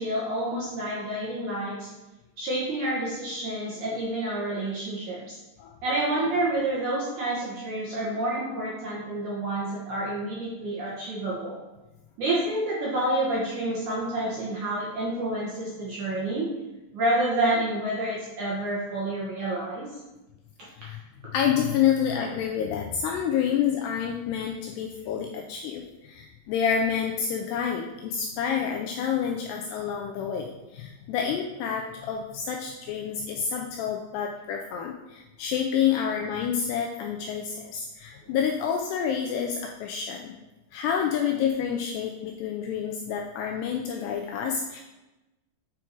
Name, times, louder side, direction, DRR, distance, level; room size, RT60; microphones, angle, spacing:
voice 1, 0.0-1.9 2.4-5.4 5.8-11.6 12.2-16.5 16.9-19.9, right 1 dB, 65° right, -6 dB, 2.0 m, -28 dB
voice 2, 20.8-40.3 40.7-44.8, left 8 dB, 90° left, 1 dB, 2.4 m, -28 dB
8.6 x 4.6 x 4.6 m, 1.0 s
omnidirectional pair, 5.4 m